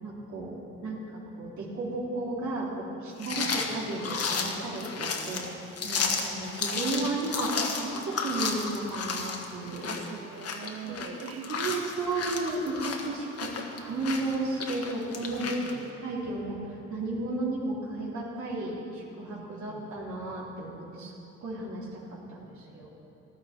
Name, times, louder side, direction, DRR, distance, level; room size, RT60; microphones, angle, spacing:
voice 1, 0.0-9.9 10.9-11.0 11.5-13.5 13.8-15.6 16.0-21.1 21.4-22.9, right 2 dB, 70° right, -5 dB, 3.0 m, -34 dB
sound 1, 3.2-15.7, left 4 dB, 50° left, 1.5 m, -33 dB
voice 2, 3.2-3.7 9.6-11.6 13.2-13.3 15.4-15.8 19.2-19.9, right 6 dB, 50° right, 6 dB, 1.2 m, -43 dB
14.5 x 12.5 x 4.4 m, 2.8 s
cardioid pair, 90°, 30 cm